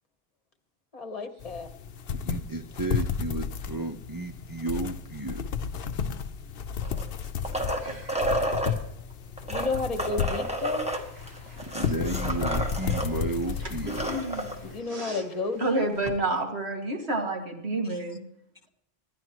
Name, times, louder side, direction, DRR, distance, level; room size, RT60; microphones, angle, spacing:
voice 1, 0.9-1.7 9.5-10.8 14.6-15.9, left 3 dB, 35° left, 8 dB, 1.3 m, -32 dB
sound 1, 1.4-14.8, left 7 dB, 65° left, 0.9 m, -33 dB
voice 2, 2.2-5.4 7.9-8.1 11.6-14.1 17.9-18.0, right 2 dB, 25° right, 5 dB, 0.6 m, -33 dB
sound 2, 6.8-8.7 9.4-13.1 13.4-13.5 13.8-14.6 16.1-16.2, right 1 dB, 5° right, 1.7 m, -31 dB
voice 3, 7.8-8.3 13.6-13.7 14.1-14.5 14.9-15.2 15.6-18.2, right 2 dB, 80° right, 2 dB, 2.4 m, -30 dB
Applause, 9.5-16.3, equal, 45° right, 7.2 m, -55 dB
26.5 x 11.0 x 3.0 m, 0.75 s
omnidirectional pair, 1.1 m